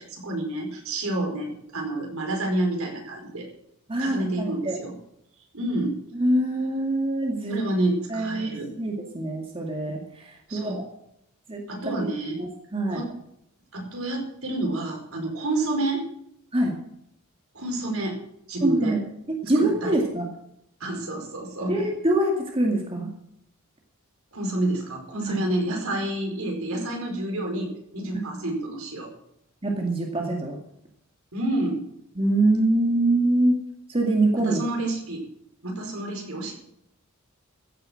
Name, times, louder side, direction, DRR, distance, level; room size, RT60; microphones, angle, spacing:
voice 1, 0.0-3.5 4.0-4.9 5.5-6.0 7.5-8.7 10.5-10.8 11.7-12.4 12.9-13.1 13.7-16.0 17.5-18.2 18.5-18.9 19.5-20.0 20.8-21.8 24.3-29.1 31.3-31.8 34.4-35.3 35.6-36.5, right 1 dB, 70° right, 2 dB, 5.0 m, -29 dB
voice 2, 3.9-4.8 6.1-7.6 8.1-10.9 11.5-11.6 12.4-13.0 16.5-16.8 18.6-19.0 19.3-20.3 21.7-23.1 25.3-25.4 29.6-30.6 32.2-34.6, right 1 dB, 25° right, 0 dB, 2.1 m, -24 dB
15.5 x 9.6 x 6.4 m, 0.76 s
head